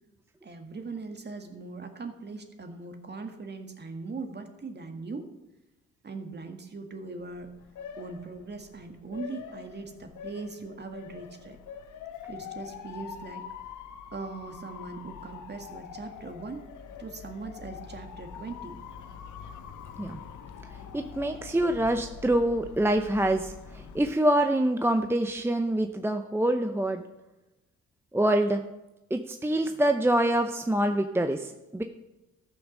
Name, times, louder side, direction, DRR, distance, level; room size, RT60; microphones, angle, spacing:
voice 1, 0.4-5.3 6.0-7.5 8.0-11.6 12.3-13.5 14.1-16.6 17.0-18.8, right 3 dB, 35° right, 5 dB, 1.9 m, -40 dB
Motor vehicle (road) / Siren, 7.2-24.0, left 7 dB, 80° left, 1.2 m, -44 dB
voice 2, 20.7-27.0 28.1-28.6 29.1-31.8, right 1 dB, 10° right, 6 dB, 0.7 m, -26 dB
13.5 x 6.2 x 6.6 m, 1.0 s
cardioid pair, 90°, 30 cm